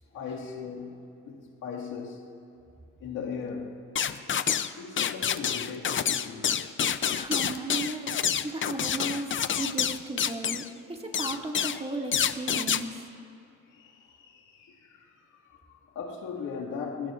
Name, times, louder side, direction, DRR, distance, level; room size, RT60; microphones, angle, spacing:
voice 1, 0.1-1.0 1.2-2.2 3.0-3.8 4.8-6.7 13.7-17.1, left 5 dB, 85° left, -2 dB, 2.2 m, -38 dB
sound 1, 4.0-4.7 5.0-10.7 11.1-11.8 12.1-12.8, left 8 dB, 40° left, 0.6 m, -28 dB
voice 2, 7.1-13.1, right 2 dB, 20° right, 0 dB, 2.2 m, -35 dB
27.5 x 17.5 x 2.6 m, 2.5 s
cardioid pair, 90°, 30 cm